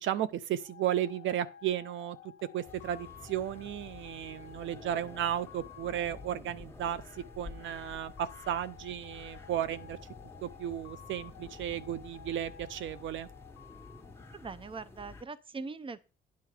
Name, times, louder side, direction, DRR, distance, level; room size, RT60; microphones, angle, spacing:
voice 1, 0.0-2.2 2.5-10.0 10.4-13.3, right 11 dB, 75° right, 0.6 m, -34 dB
sound 1, 0.6-15.1, left 10 dB, 85° left, 0.7 m, -53 dB
sound 2, 2.7-15.2, left 3 dB, 10° left, 1.4 m, -50 dB
voice 2, 14.3-16.0, right 4 dB, 25° right, 0.7 m, -41 dB
9.4 x 5.7 x 4.8 m
cardioid pair, 90°, 20 cm